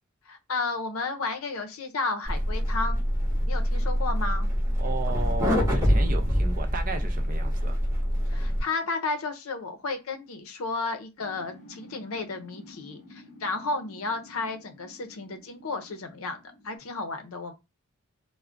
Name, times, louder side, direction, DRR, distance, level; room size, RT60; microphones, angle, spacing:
voice 1, 0.3-3.0 3.5-4.5 8.3-17.5, left 3 dB, 70° left, 0.6 m, -33 dB
sound 1, 2.3-8.6, equal, 15° right, 1.1 m, -25 dB
voice 2, 4.8-7.7, right 3 dB, 40° right, 0.5 m, -34 dB
sound 2, 11.2-16.8, left 1 dB, 35° left, 1.0 m, -51 dB
4.4 x 2.1 x 2.5 m
head